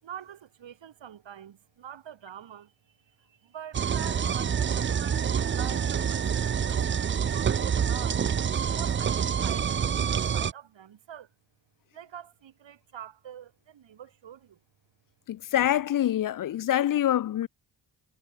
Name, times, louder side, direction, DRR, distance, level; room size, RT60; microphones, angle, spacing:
voice 1, 0.0-8.2 8.7-11.3 11.9-14.6, right 9 dB, 65° right, 4.3 m, -45 dB
sound 1, 3.7-10.5, right 7 dB, 25° right, 0.5 m, -27 dB
voice 2, 15.3-17.5, left 12 dB, 45° left, 0.5 m, -25 dB
supercardioid pair, 55°, 47 cm